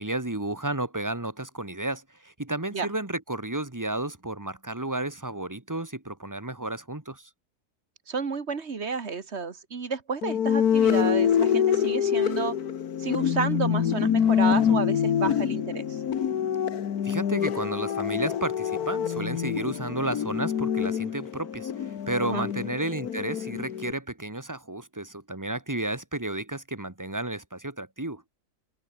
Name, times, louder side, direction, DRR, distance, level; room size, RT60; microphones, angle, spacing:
voice 1, 0.0-7.3 17.0-28.2, right 2 dB, 10° right, 1.7 m, -32 dB
voice 2, 8.1-12.6 13.0-16.0 22.2-22.5, right 5 dB, 45° right, 1.7 m, -31 dB
sound 1, 10.2-23.9, left 8 dB, 85° left, 1.7 m, -26 dB
omnidirectional pair, 1.6 m